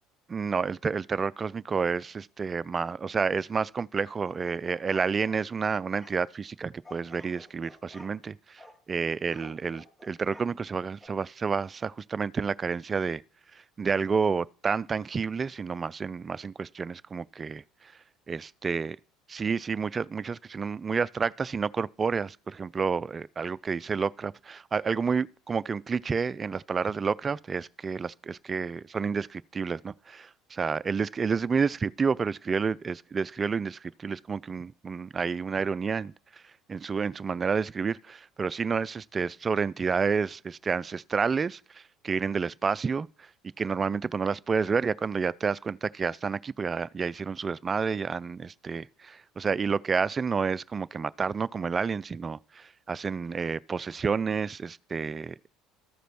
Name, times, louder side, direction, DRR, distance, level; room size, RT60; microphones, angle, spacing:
voice 1, 0.3-13.2 13.5-17.9 18.3-19.0 19.3-36.4 36.7-43.3 43.6-55.5, right 5 dB, 30° right, 0.4 m, -30 dB
sound 1, 4.2-5.4 5.9-6.1 6.8-8.2 8.6-8.8 9.3-10.5 11.0-11.1, left 1 dB, 5° left, 2.8 m, -52 dB
13.5 x 5.1 x 6.0 m
hypercardioid pair, 75°, 0 cm